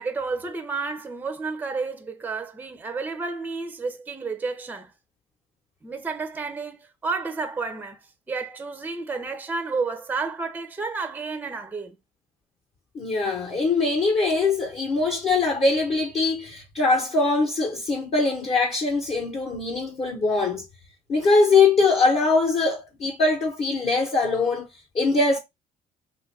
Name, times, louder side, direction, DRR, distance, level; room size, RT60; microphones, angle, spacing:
voice 1, 0.0-4.9 5.8-8.0 8.3-12.0, right 4 dB, 10° right, 0.4 m, -31 dB
voice 2, 12.9-20.7 21.1-24.7 24.9-25.4, left 3 dB, 35° left, 0.9 m, -22 dB
3.0 x 2.5 x 3.2 m
cardioid pair, 110°, 17 cm